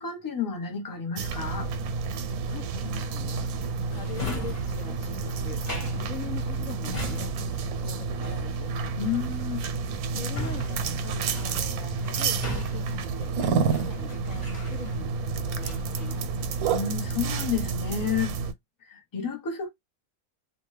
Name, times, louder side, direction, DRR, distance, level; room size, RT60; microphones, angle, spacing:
voice 1, 0.0-1.7 9.0-9.7 16.6-18.4 18.8-19.7, left 7 dB, 20° left, 0.7 m, -31 dB
sound 1, 1.2-18.5, right 5 dB, 85° right, 1.1 m, -30 dB
voice 2, 2.5-3.6 3.9-5.6 5.9-7.5 7.8-8.7 10.1-13.3 13.6-16.4, left 7 dB, 70° left, 1.0 m, -43 dB
Drawer open or close, 3.9-15.2 15.6-16.9 17.2-17.8, left 2 dB, 35° left, 1.3 m, -39 dB
2.6 x 2.4 x 3.2 m
omnidirectional pair, 1.5 m